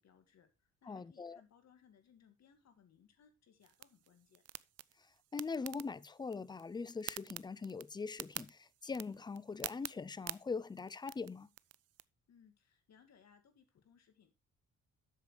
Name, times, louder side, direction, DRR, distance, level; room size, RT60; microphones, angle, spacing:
voice 1, 0.0-4.4 12.3-14.3, left 7 dB, 60° left, 2.4 m, -66 dB
voice 2, 0.9-1.4 5.3-11.5, left 4 dB, 15° left, 0.4 m, -42 dB
sound 1, 3.6-12.0, right 13 dB, 55° right, 0.5 m, -49 dB
8.1 x 6.8 x 4.8 m
cardioid pair, 90°, 30 cm